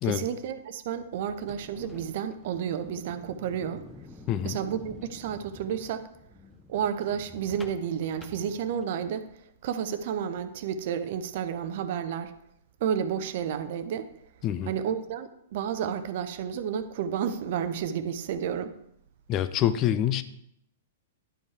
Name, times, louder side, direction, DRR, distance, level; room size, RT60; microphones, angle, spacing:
voice 1, 0.0-3.8 4.4-6.1 6.7-9.3 9.6-12.3 12.8-14.1 14.6-18.8, right 8 dB, 50° right, 11 dB, 0.7 m, -31 dB
sound 1, 1.3-9.1, left 2 dB, 10° left, 0.8 m, -49 dB
voice 2, 19.3-20.2, left 11 dB, 30° left, 12 dB, 0.5 m, -26 dB
11.0 x 5.3 x 4.7 m, 0.74 s
figure-of-eight pair, 105°, 0 cm